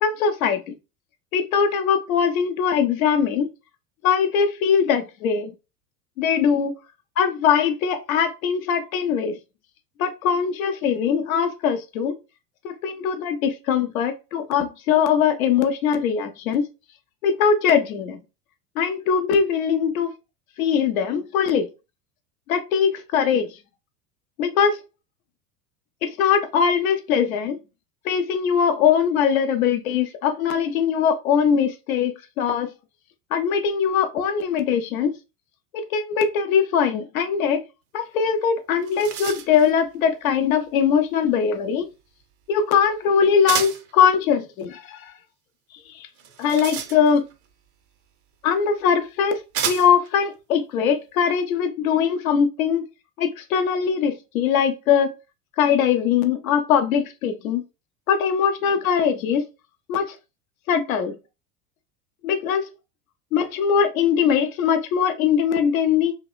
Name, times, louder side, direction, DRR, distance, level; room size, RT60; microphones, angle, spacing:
voice 1, 0.0-0.7 1.3-3.5 4.0-5.5 6.2-6.7 7.2-9.3 10.0-12.2 12.6-16.6 17.2-18.2 18.8-20.1 20.6-21.7 22.5-23.5 24.4-24.8 26.0-27.6 28.0-32.7 33.3-35.1 35.7-37.6 37.9-41.9 42.5-45.1 46.4-47.2 48.4-49.4 49.7-52.8 53.2-55.1 55.6-57.6 58.1-59.4 59.9-60.1 60.7-61.1 62.2-62.7 63.3-66.1, left 7 dB, 60° left, 0.6 m, -21 dB
sound 1, 38.3-38.4 38.7-39.7 43.5-43.9 46.2-47.4 48.5-48.6 49.5-50.1, right 8 dB, 55° right, 0.6 m, -30 dB
2.9 x 2.1 x 2.3 m
figure-of-eight pair, 80°, 48 cm